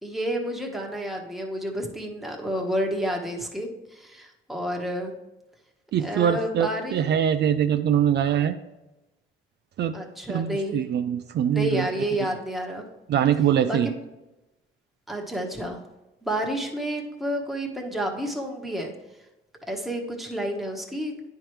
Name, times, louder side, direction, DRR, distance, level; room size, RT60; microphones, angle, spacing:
voice 1, 0.0-5.1 6.0-7.1 9.9-10.8 11.5-12.8 13.7-13.9 15.1-15.8 16.2-18.9 19.7-21.2, equal, ahead, 0 dB, 1.2 m, -30 dB
voice 2, 5.9-8.5 9.8-10.0 10.3-11.9 13.1-13.9, right 9 dB, 60° right, 9 dB, 0.4 m, -23 dB
9.7 x 4.6 x 3.2 m, 1.0 s
cardioid pair, 90°, 20 cm